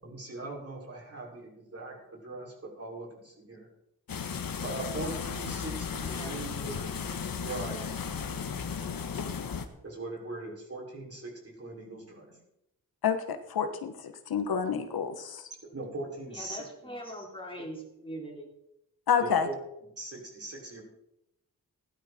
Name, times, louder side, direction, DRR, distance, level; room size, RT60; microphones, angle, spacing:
voice 1, 0.0-3.7 4.6-6.9 7.4-7.8 9.8-12.4 15.7-16.9 19.2-19.5 20.0-20.8, right 2 dB, 40° right, -2 dB, 6.2 m, -40 dB
sound 1, 4.1-9.7, left 6 dB, 70° left, 1.5 m, -35 dB
voice 2, 6.0-6.4 16.3-18.5, equal, 15° left, -1 dB, 4.4 m, -42 dB
voice 3, 13.0-15.5 19.1-19.5, left 7 dB, 90° left, 8 dB, 1.4 m, -29 dB
16.5 x 11.5 x 4.5 m, 0.83 s
wide cardioid pair, 90°, 36 cm